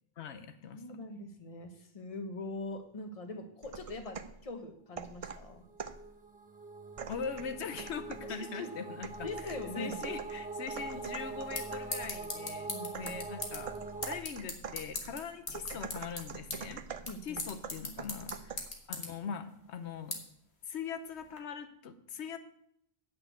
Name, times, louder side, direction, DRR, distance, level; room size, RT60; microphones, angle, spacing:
voice 1, 0.2-0.8 7.1-13.7 14.0-16.8 17.2-20.1 20.6-22.4, left 6 dB, 90° left, 9 dB, 1.1 m, -41 dB
voice 2, 0.7-4.2 4.4-5.6 8.2-8.7 9.2-10.0 12.7-13.2 17.1-17.4, left 2 dB, 35° left, 5 dB, 1.1 m, -42 dB
sound 1, 3.6-4.4 5.0-6.1 7.0-8.4 9.0-12.3 12.9-18.8, right 6 dB, 45° right, 0.5 m, -45 dB
sound 2, 5.7-14.2, right 3 dB, 10° right, 0.8 m, -43 dB
sound 3, 10.9-21.4, left 3 dB, 75° left, 1.8 m, -43 dB
8.5 x 6.0 x 8.1 m, 0.75 s
omnidirectional pair, 1.1 m